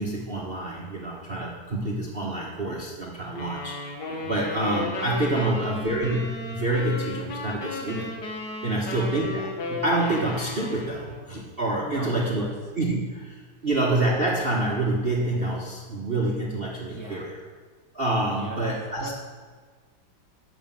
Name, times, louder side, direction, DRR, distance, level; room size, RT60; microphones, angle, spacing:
voice 1, 0.0-3.7 4.1-8.1 8.6-12.4 12.8-17.3 17.9-19.1, right 2 dB, 35° right, -3 dB, 1.2 m, -27 dB
sound 1, 3.4-11.3, left 2 dB, 55° left, 1.8 m, -34 dB
voice 2, 5.4-5.8 8.7-9.1 11.8-12.5 16.9-17.3 18.3-19.1, right 1 dB, 10° left, -2 dB, 1.3 m, -40 dB
11.5 x 6.2 x 7.5 m, 1.5 s
omnidirectional pair, 2.3 m